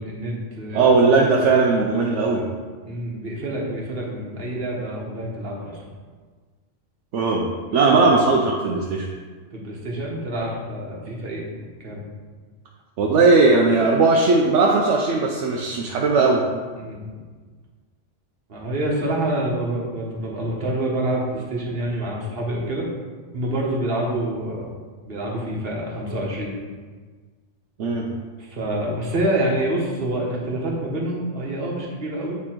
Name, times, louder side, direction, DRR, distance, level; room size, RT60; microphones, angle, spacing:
voice 1, 0.0-1.0 1.3-1.6 2.8-5.9 7.8-7.9 9.5-12.0 16.8-17.2 18.5-22.9 23.3-24.7 25.1-26.5 28.4-32.4, right 1 dB, 50° right, -3 dB, 1.5 m, -27 dB
voice 2, 0.7-2.4 7.1-7.5 7.7-9.1 13.0-16.5 27.8-28.1, right 3 dB, 75° right, -1 dB, 1.0 m, -18 dB
8.5 x 3.6 x 4.4 m, 1.5 s
omnidirectional pair, 1.2 m